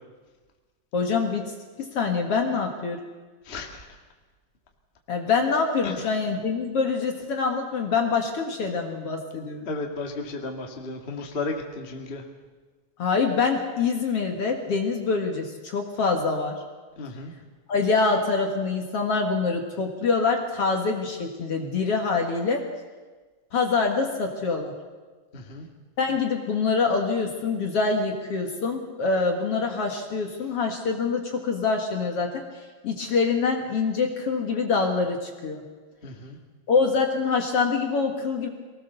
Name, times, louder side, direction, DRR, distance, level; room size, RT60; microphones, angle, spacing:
voice 1, 0.9-1.4 1.8-3.0 5.1-9.7 13.0-16.6 17.7-22.6 23.5-24.7 26.0-32.4 32.8-35.6 36.7-38.5, left 4 dB, 50° left, 2 dB, 2.3 m, -25 dB
voice 2, 3.4-3.8 5.8-6.0 9.6-12.2 17.0-17.3 25.3-25.6 36.0-36.4, left 3 dB, 25° left, 2 dB, 1.6 m, -34 dB
23.5 x 19.0 x 6.9 m, 1.4 s
omnidirectional pair, 3.9 m